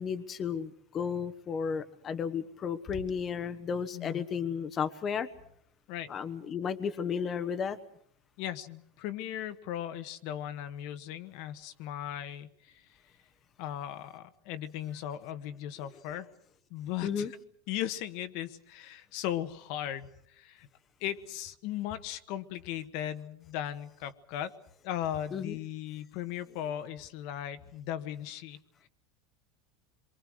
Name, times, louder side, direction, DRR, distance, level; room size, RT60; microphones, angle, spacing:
voice 1, 0.0-5.3 6.1-7.8 17.0-17.3 25.3-25.6, left 6 dB, 35° left, 11 dB, 1.2 m, -33 dB
voice 2, 3.9-4.3 5.9-6.1 8.4-12.8 13.6-16.3 16.7-17.3 17.7-20.7 21.0-24.5 24.8-28.6, left 11 dB, 65° left, 10 dB, 1.5 m, -37 dB
26.5 x 23.5 x 6.4 m, 0.68 s
supercardioid pair, 120°, 0 cm